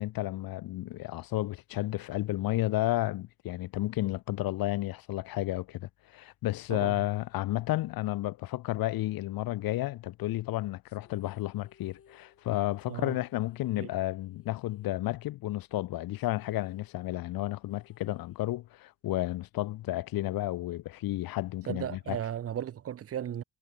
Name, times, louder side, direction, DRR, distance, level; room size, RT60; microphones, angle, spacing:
voice 1, 0.0-22.2, left 16 dB, 75° left, 0.9 m, -32 dB
sound 1, 10.8-15.5 15.8-15.9 16.2-18.8, left 7 dB, 40° left, 4.0 m, -65 dB
voice 2, 21.7-23.4, right 10 dB, 40° right, 0.8 m, -35 dB
cardioid pair, 140°, 35 cm